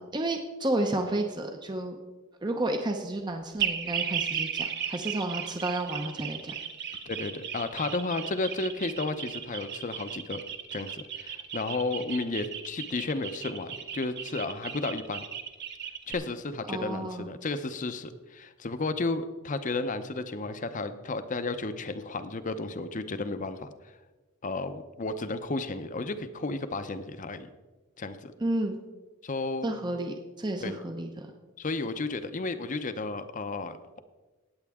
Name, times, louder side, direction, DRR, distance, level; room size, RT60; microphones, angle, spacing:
voice 1, 0.1-2.0 2.4-6.5 16.7-17.3 28.4-28.8 29.6-31.3, right 1 dB, 20° right, 4 dB, 0.7 m, -31 dB
sound 1, 3.6-16.1, right 8 dB, 55° right, 1.0 m, -35 dB
voice 2, 7.1-10.4 10.7-15.2 16.1-23.7 24.4-27.5 28.0-28.3 29.2-29.7 30.6-30.8 31.6-34.0, left 3 dB, 35° left, 11 dB, 0.7 m, -33 dB
18.5 x 7.9 x 3.6 m, 1.2 s
head